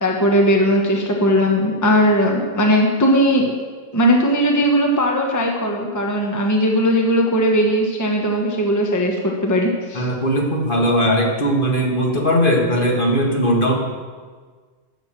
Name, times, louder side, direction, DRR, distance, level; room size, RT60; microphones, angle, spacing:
voice 1, 0.0-3.6 3.9-10.1, equal, 15° left, 0 dB, 1.1 m, -18 dB
voice 2, 9.9-13.7, equal, 45° left, -1 dB, 1.8 m, -19 dB
11.5 x 6.5 x 7.5 m, 1.5 s
omnidirectional pair, 1.2 m